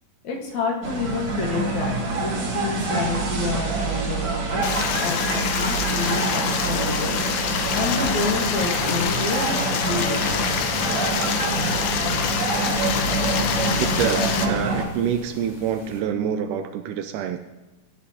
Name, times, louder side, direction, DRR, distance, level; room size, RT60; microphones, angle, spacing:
voice 1, 0.2-2.0 2.2-4.6 4.9-7.2 7.7-10.3, left 4 dB, 60° left, -1 dB, 2.7 m, -28 dB
sound 1, 0.8-14.9, right 3 dB, 45° right, 2.5 m, -26 dB
Stream, 4.6-14.5, left 7 dB, 90° left, 2.6 m, -26 dB
sound 2, 10.9-16.0, left 1 dB, 35° left, 2.4 m, -45 dB
voice 2, 13.8-17.4, right 8 dB, 80° right, 8 dB, 1.9 m, -26 dB
17.5 x 10.0 x 2.8 m, 1.1 s
omnidirectional pair, 4.1 m